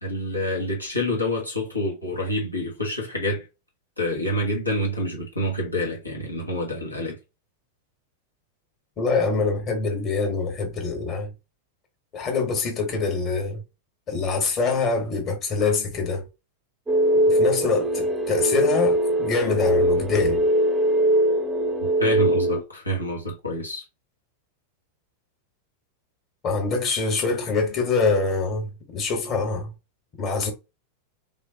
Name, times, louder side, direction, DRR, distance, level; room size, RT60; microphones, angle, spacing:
voice 1, 0.0-3.5 4.0-7.2 22.0-23.8, equal, 85° left, 1.3 m, -27 dB
voice 2, 9.0-11.3 12.1-13.6 14.1-16.2 17.3-20.4 26.4-29.7 30.2-30.5, left 4 dB, 30° left, 1.4 m, -25 dB
sound 1, 16.9-22.6, right 1 dB, 15° right, 0.6 m, -21 dB
3.3 x 2.8 x 2.8 m
figure-of-eight pair, 90°, 0 cm